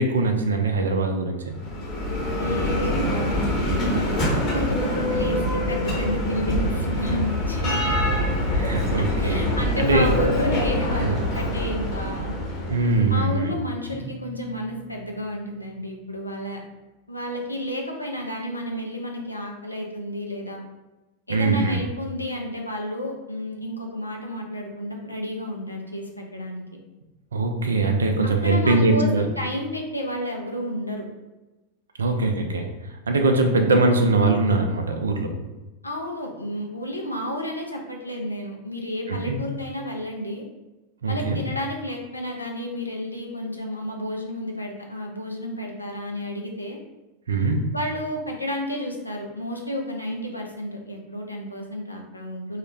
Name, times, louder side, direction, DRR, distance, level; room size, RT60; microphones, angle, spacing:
voice 1, 0.0-1.5 8.3-9.4 9.8-10.1 11.0-11.1 12.7-13.5 21.3-21.8 27.3-29.3 32.0-32.7 33.1-35.3 39.1-39.4 41.0-41.4 47.3-47.6, right 3 dB, 70° right, 4 dB, 0.3 m, -22 dB
Bell, 1.5-13.3, left 1 dB, 40° left, 0.8 m, -25 dB
voice 2, 2.4-7.8 9.0-12.3 13.1-16.6 17.1-20.6 21.3-26.6 28.4-31.1 35.8-40.4 41.1-46.8 47.7-52.6, equal, 85° left, 0 dB, 0.4 m, -31 dB
Bowed string instrument, 13.9-16.7, right 3 dB, 20° left, 0.5 m, -44 dB
2.3 x 2.1 x 3.1 m, 1.1 s
figure-of-eight pair, 90°, 0 cm